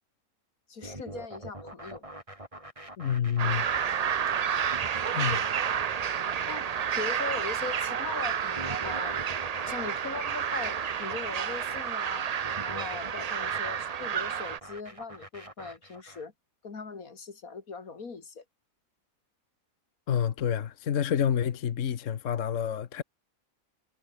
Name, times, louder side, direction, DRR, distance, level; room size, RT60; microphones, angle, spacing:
voice 1, 0.7-2.0 5.3-5.5 6.5-9.2 9.5-12.3 12.6-16.3 16.6-18.4, left 4 dB, 85° left, 2.9 m, -40 dB
sound 1, 0.8-16.2, right 1 dB, 20° right, 5.2 m, -44 dB
voice 2, 3.0-3.7 5.1-5.6 20.1-23.0, left 8 dB, 65° left, 1.3 m, -28 dB
sound 2, 3.4-14.6, right 8 dB, 65° right, 0.3 m, -30 dB
omnidirectional pair, 1.4 m